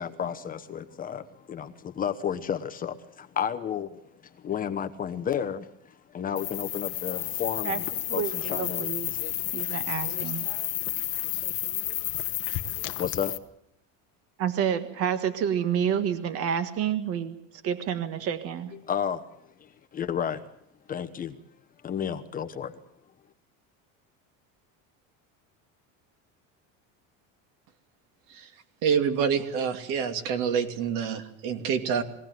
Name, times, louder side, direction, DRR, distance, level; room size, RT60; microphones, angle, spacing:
voice 1, 0.0-7.9 8.1-9.2 13.0-13.3 18.9-19.2 19.6-20.4 20.9-21.4 21.8-22.8, left 8 dB, 25° left, 1.0 m, -32 dB
sound 1, 6.4-13.4, left 14 dB, 40° left, 1.3 m, -31 dB
voice 2, 8.1-9.1 9.5-10.5 14.4-17.4 17.6-18.7, right 8 dB, 40° right, 1.6 m, -29 dB
voice 3, 28.8-32.0, right 7 dB, 60° right, 2.9 m, -27 dB
22.5 x 17.0 x 9.3 m
cardioid pair, 170°, 37 cm